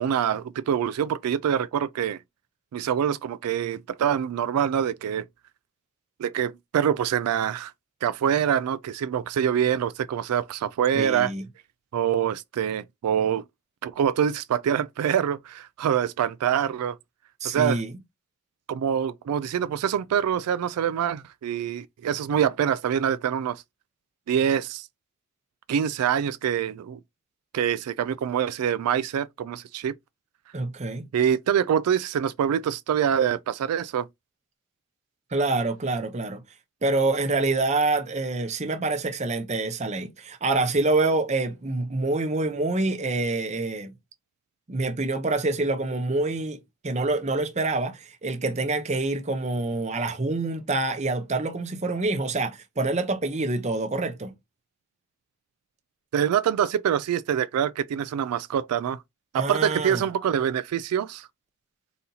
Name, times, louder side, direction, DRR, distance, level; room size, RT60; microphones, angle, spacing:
voice 1, 0.0-2.2 2.7-5.3 6.2-7.7 8.0-11.3 11.9-13.4 13.8-17.0 17.4-17.8 18.7-23.6 24.3-24.9 25.7-27.0 27.5-29.9 31.1-34.1 56.1-59.0 59.3-61.3, right 9 dB, 90° right, 0.3 m, -25 dB
voice 2, 10.9-11.5 17.4-17.9 30.5-31.1 35.3-36.4 36.8-43.9 44.7-46.6 46.8-54.3 59.3-60.0, right 2 dB, 30° right, 0.7 m, -26 dB
4.1 x 2.8 x 3.8 m
head